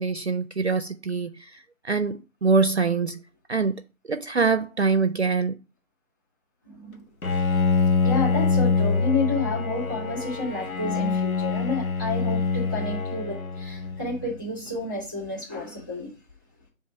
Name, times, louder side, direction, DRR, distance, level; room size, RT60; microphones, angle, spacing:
voice 1, 0.0-3.2 3.5-3.7 4.1-5.5, right 4 dB, 55° right, 0.5 m, -24 dB
voice 2, 6.6-7.0 8.0-16.1, left 3 dB, 15° left, 2.3 m, -30 dB
Bowed string instrument, 7.2-14.3, left 4 dB, 90° left, 1.1 m, -25 dB
7.6 x 2.6 x 4.8 m
figure-of-eight pair, 165°, 41 cm